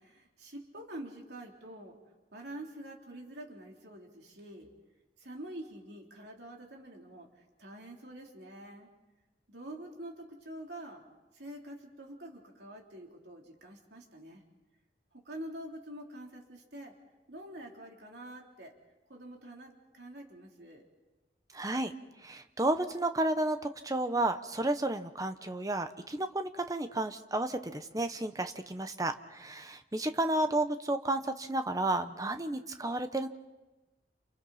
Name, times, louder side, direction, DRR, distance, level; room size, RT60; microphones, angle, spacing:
voice 1, 0.0-2.0 2.3-4.7 5.2-8.9 9.5-11.0 11.3-14.5 15.1-17.0 17.3-18.7 19.1-20.9, right 1 dB, 70° right, 0 dB, 3.5 m, -46 dB
voice 2, 21.5-21.9 22.2-33.3, right 2 dB, 20° right, 8 dB, 1.0 m, -32 dB
29.0 x 29.0 x 4.3 m, 1.1 s
head